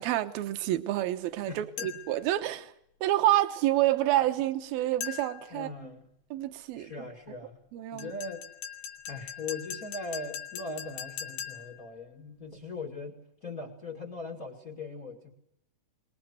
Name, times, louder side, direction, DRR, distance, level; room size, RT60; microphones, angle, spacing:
voice 1, 0.0-2.7 3.0-5.7 6.3-7.1 7.7-8.1, right 14 dB, 70° right, 2.3 m, -28 dB
voice 2, 1.5-1.9 5.5-6.1 6.8-8.5 9.1-15.3, left 3 dB, 65° left, 0.8 m, -40 dB
sound 1, 1.8-2.2 5.0-5.5 8.0-11.8, left 9 dB, 90° left, 4.6 m, -40 dB
25.0 x 21.0 x 7.9 m
omnidirectional pair, 5.7 m